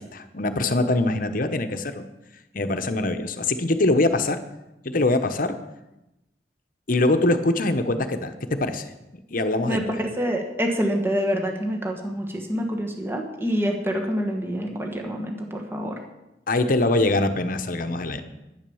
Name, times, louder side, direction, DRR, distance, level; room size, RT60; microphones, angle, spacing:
voice 1, 0.0-2.1 2.5-4.4 4.8-5.6 6.9-8.3 8.6-8.9 9.3-10.0 16.5-18.2, left 2 dB, 50° left, 8 dB, 1.0 m, -23 dB
voice 2, 9.7-15.9, equal, 15° right, 2 dB, 1.5 m, -26 dB
11.0 x 10.0 x 7.1 m, 0.94 s
head